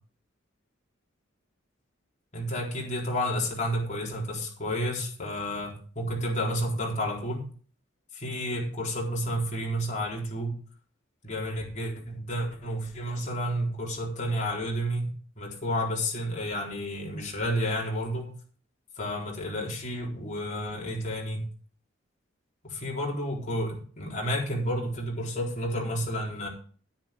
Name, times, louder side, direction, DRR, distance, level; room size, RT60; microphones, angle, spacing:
voice 1, 2.3-7.5 8.2-10.5 11.2-15.1 15.4-18.3 19.0-21.4 22.6-26.5, equal, 35° left, -2 dB, 4.1 m, -31 dB
10.0 x 10.0 x 5.3 m, 0.43 s
head